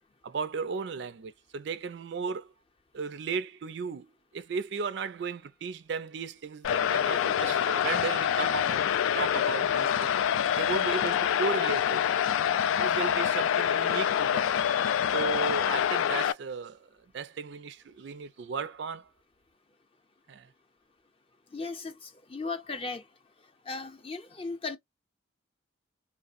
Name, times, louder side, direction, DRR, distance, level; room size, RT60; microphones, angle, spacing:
voice 1, 0.2-2.5 2.9-4.1 4.3-10.1 10.6-12.2 12.8-14.6 15.1-19.1 20.3-20.5, right 5 dB, 60° right, 0.4 m, -35 dB
sound 1, 6.6-16.3, left 9 dB, 80° left, 0.3 m, -26 dB
voice 2, 21.5-23.0 23.7-24.8, left 3 dB, 25° left, 0.6 m, -36 dB
3.1 x 2.0 x 2.4 m
head